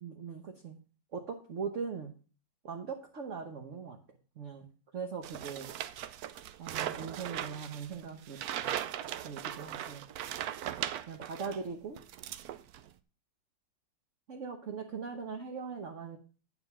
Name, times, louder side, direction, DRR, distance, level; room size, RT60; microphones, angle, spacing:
voice 1, 0.0-0.8 1.1-2.1 2.6-4.0 4.4-4.7 4.9-5.7 6.6-8.4 9.2-10.0 11.1-12.0 14.3-16.2, right 5 dB, 50° right, 4 dB, 1.1 m, -40 dB
sound 1, 5.2-11.6 12.0-12.9, right 11 dB, 70° right, 0.9 m, -39 dB
9.3 x 4.7 x 6.7 m, 0.38 s
omnidirectional pair, 2.1 m